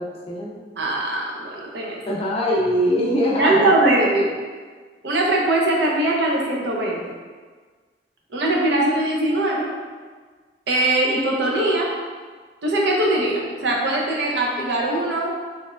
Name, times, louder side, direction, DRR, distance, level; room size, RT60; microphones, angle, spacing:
voice 1, 0.0-0.6 2.0-3.6, equal, 35° left, -4 dB, 0.5 m, -22 dB
voice 2, 0.8-2.0 3.4-4.3 5.0-7.0 8.3-9.7 10.7-11.9 12.6-15.3, right 1 dB, 70° right, -2 dB, 0.6 m, -21 dB
3.3 x 3.0 x 2.3 m, 1.5 s
head